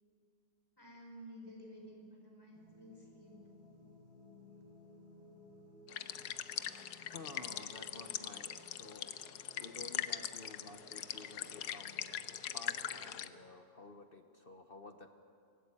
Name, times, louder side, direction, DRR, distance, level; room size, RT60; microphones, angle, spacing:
voice 1, 0.8-3.3, equal, 15° left, -1 dB, 4.9 m, -53 dB
sound 1, 2.5-13.4, left 1 dB, 75° right, 4.7 m, -59 dB
sound 2, 5.9-13.3, left 10 dB, 80° left, 1.3 m, -42 dB
voice 2, 6.9-9.1 9.6-12.2 12.5-15.1, left 2 dB, 40° left, 7 dB, 1.0 m, -52 dB
24.5 x 18.0 x 8.3 m, 2.5 s
omnidirectional pair, 1.7 m